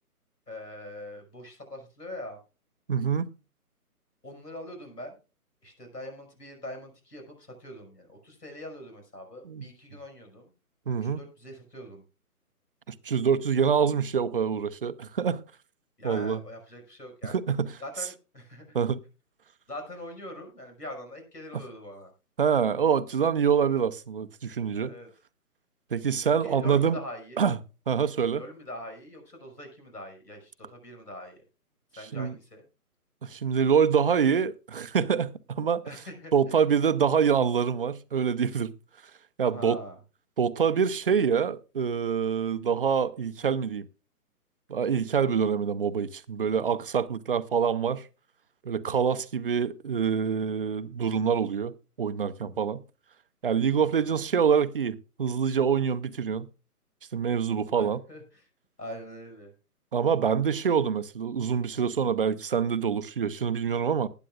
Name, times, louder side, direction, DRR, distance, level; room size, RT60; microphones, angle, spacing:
voice 1, 0.5-2.4 4.2-5.2 5.6-10.5 11.0-12.0 16.0-17.4 17.8-18.8 19.7-22.1 24.8-25.1 26.4-27.5 28.3-31.4 31.9-32.6 35.8-36.6 39.4-40.0 53.8-54.2 57.7-58.5 58.8-59.5, left 1 dB, 90° left, 5.8 m, -43 dB
voice 2, 2.9-3.3 9.5-9.6 10.9-11.2 12.9-15.4 16.0-16.4 17.2-17.7 18.7-19.0 22.4-24.9 25.9-27.0 27.4-27.6 27.9-28.4 32.1-32.3 33.2-35.8 36.3-38.7 39.4-39.8 40.4-43.8 44.7-48.1 48.6-51.7 52.0-52.8 53.4-56.5 57.1-58.0 59.9-64.1, right 7 dB, 35° right, 0.6 m, -25 dB
20.0 x 9.1 x 2.4 m
figure-of-eight pair, 140°, 46 cm